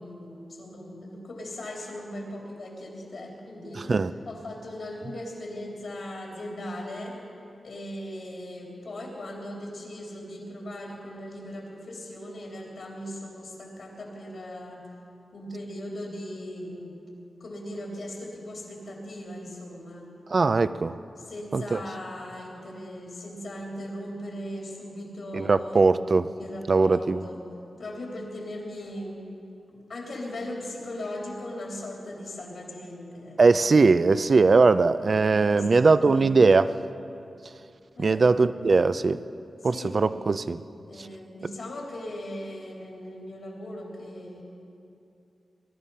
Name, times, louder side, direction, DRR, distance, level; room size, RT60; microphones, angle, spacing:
voice 1, 0.0-7.2 7.6-14.9 15.3-17.0 17.4-20.1 21.3-25.9 26.4-27.5 27.8-29.3 29.7-33.9 35.0-36.4 38.0-38.3 39.6-40.0 40.9-44.4, left 1 dB, 70° left, -2 dB, 3.3 m, -39 dB
voice 2, 20.3-21.0 21.5-21.8 25.3-26.3 26.7-27.2 33.4-36.7 38.0-39.2 39.6-40.6, right 4 dB, 50° right, 14 dB, 0.5 m, -20 dB
21.5 x 11.5 x 5.6 m, 2.6 s
wide cardioid pair, 85°, 0 cm